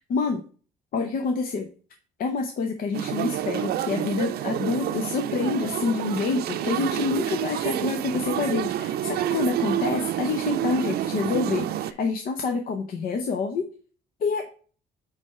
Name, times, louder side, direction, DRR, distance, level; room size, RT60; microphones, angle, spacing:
voice 1, 0.1-0.4 0.9-1.7 2.2-13.7 14.2-14.5, left 4 dB, 55° left, 5 dB, 0.8 m, -27 dB
sound 1, 2.9-11.9, right 12 dB, 65° right, 0.5 m, -28 dB
8.2 x 3.4 x 4.3 m, 0.41 s
cardioid pair, 110°, 17 cm